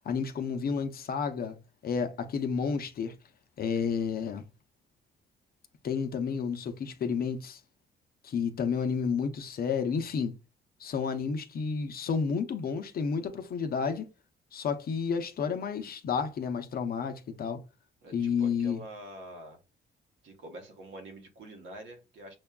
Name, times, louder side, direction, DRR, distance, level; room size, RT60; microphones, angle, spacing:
voice 1, 0.1-1.6 1.8-3.1 3.6-4.5 5.8-7.6 8.2-10.3 10.8-14.1 14.5-17.6 18.1-18.8, left 6 dB, 50° left, 0.6 m, -31 dB
voice 2, 18.0-19.6 20.2-22.4, right 1 dB, 75° right, 1.1 m, -46 dB
6.1 x 2.2 x 2.3 m
cardioid pair, 90°, 20 cm